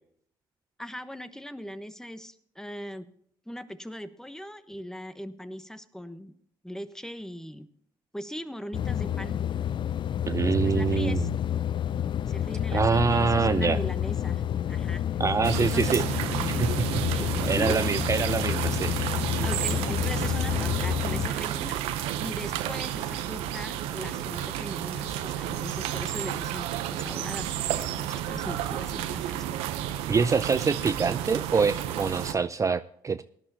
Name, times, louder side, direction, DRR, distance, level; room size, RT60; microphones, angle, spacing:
voice 1, 0.8-3.1 3.5-6.3 6.6-7.7 8.1-9.4 10.4-11.3 12.3-14.4 14.7-15.0 15.6-16.0 17.1-17.3 17.5-18.1 19.4-21.8 22.2-29.4, equal, 5° left, 11 dB, 1.1 m, -39 dB
sound 1, 8.7-21.3, left 10 dB, 50° left, 0.4 m, -29 dB
voice 2, 10.3-11.3 12.7-13.8 15.2-16.0 16.6-19.1 19.4-19.5 30.1-33.2, right 5 dB, 30° right, 12 dB, 0.4 m, -25 dB
sound 2, 15.4-32.3, right 11 dB, 80° right, 0.8 m, -31 dB
18.0 x 11.0 x 2.9 m, 0.66 s
hypercardioid pair, 55°, 10 cm